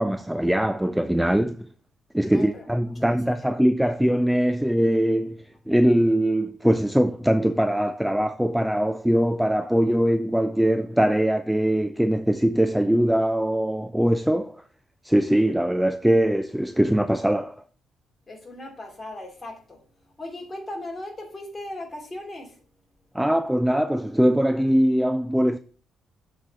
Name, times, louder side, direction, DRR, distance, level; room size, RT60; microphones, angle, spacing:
voice 1, 0.0-1.7 2.1-14.6 15.0-17.6 23.1-25.6, equal, 5° right, 0.3 m, -22 dB
voice 2, 2.3-2.6 2.9-3.5 18.3-19.8 20.2-22.6, left 1 dB, 25° left, 2.7 m, -38 dB
7.5 x 4.1 x 4.6 m
cardioid pair, 90°, 0 cm